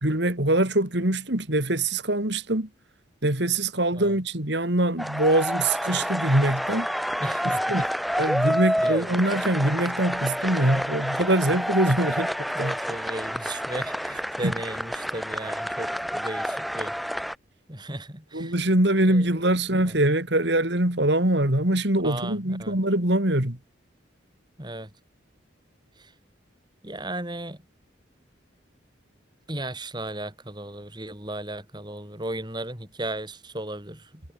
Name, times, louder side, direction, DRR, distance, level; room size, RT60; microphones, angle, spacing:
voice 1, 0.0-2.7 3.2-6.9 7.7-7.8 8.2-12.3 12.6-12.8 14.4-14.5 18.3-23.6, right 1 dB, 60° right, 3.5 m, -23 dB
sound 1, 5.0-17.3, equal, ahead, 4.4 m, -29 dB
voice 2, 7.2-7.9 8.8-9.0 12.5-17.0 17.7-18.5 19.1-19.3 19.7-19.9 22.0-22.8 24.6-24.9 26.0-26.1 26.8-27.6 29.5-34.2, right 1 dB, 20° right, 3.5 m, -35 dB
head